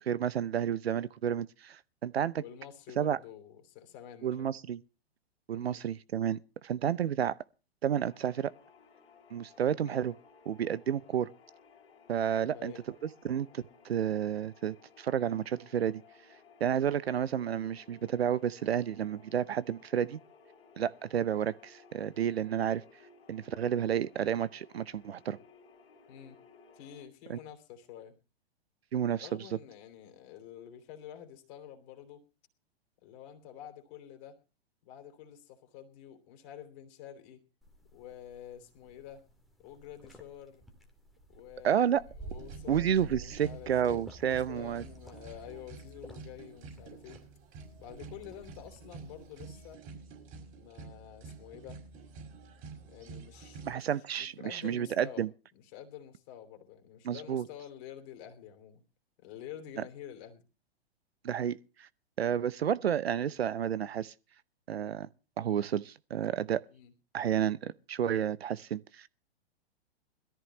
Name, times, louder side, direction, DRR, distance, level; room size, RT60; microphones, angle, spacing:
voice 1, 0.0-2.4 3.0-3.2 4.2-4.8 5.5-7.3 7.8-8.5 9.3-10.1 10.5-11.3 12.1-12.7 13.2-16.0 16.6-20.2 20.8-22.8 23.3-25.4 27.3-27.4 28.9-29.4 41.6-42.0 42.7-44.8 53.7-55.3 57.0-57.5 61.2-61.9 62.2-64.1 64.7-65.1 65.4-66.6 67.1-69.1, right 9 dB, 70° right, 0.7 m, -31 dB
voice 2, 2.4-4.5 5.5-5.9 9.9-10.1 12.4-12.8 26.1-26.4 26.7-28.2 29.2-32.2 33.0-34.4 34.8-37.4 37.9-39.2 39.6-40.6 41.3-41.9 42.2-47.2 47.8-49.9 50.6-51.8 52.9-55.3 55.5-58.8 59.2-60.4 66.7-66.9, left 10 dB, 40° left, 3.1 m, -49 dB
sound 1, 7.9-27.1, left 5 dB, 65° left, 3.5 m, -59 dB
sound 2, 37.6-49.7, right 3 dB, ahead, 1.9 m, -52 dB
sound 3, 42.2-53.7, right 4 dB, 35° right, 5.9 m, -49 dB
21.5 x 14.0 x 3.0 m
figure-of-eight pair, 110°, 31 cm